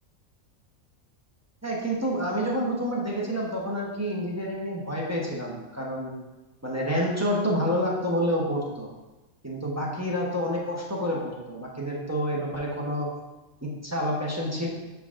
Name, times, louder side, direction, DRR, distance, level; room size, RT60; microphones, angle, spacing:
voice 1, 1.6-6.1 6.6-8.9 9.4-13.1 13.6-14.7, equal, 15° right, -4 dB, 0.8 m, -28 dB
10.5 x 3.9 x 2.5 m, 1.1 s
omnidirectional pair, 1.5 m